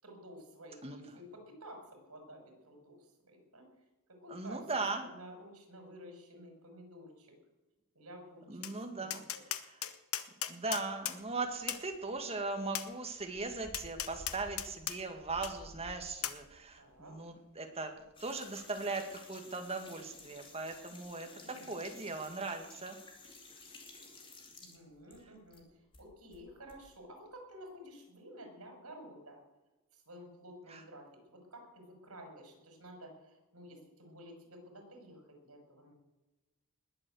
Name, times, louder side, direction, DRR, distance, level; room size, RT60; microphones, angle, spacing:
voice 1, 0.0-3.7 4.1-4.7 5.0-7.4 7.9-8.6 9.0-9.4 16.8-17.2 21.3-22.1 24.6-29.4 29.9-35.9, equal, 80° right, 3 dB, 5.9 m, -52 dB
voice 2, 4.3-5.1 8.5-9.2 9.6-9.8 10.5-17.9 18.2-21.3 21.7-23.0 30.7-30.8, right 3 dB, 30° right, 5 dB, 2.1 m, -39 dB
Tap, 8.6-8.7 9.1-11.2 11.7-11.8 12.7-12.9 13.7-15.0 15.4-15.5 16.2-16.4, left 11 dB, 75° left, 1.1 m, -37 dB
sound 1, 10.8-19.3, equal, 55° left, 5.4 m, -56 dB
sound 2, 18.2-25.6 25.9-26.8, left 3 dB, 25° left, 2.7 m, -54 dB
20.0 x 7.8 x 7.9 m, 1.1 s
head